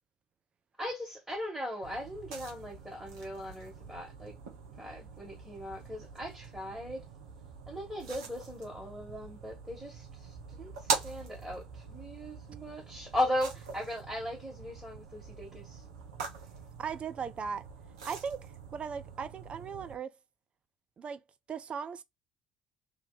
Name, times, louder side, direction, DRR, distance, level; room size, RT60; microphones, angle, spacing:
voice 1, 0.8-4.3 4.8-7.1 7.7-15.8, left 1 dB, 10° right, 1.8 m, -38 dB
sound 1, 1.8-19.9, right 5 dB, 70° right, 0.9 m, -43 dB
voice 2, 16.8-17.6 18.0-20.1 21.0-21.2 21.5-22.0, right 6 dB, 35° right, 0.4 m, -38 dB
3.0 x 2.8 x 4.0 m
figure-of-eight pair, 55°, 3 cm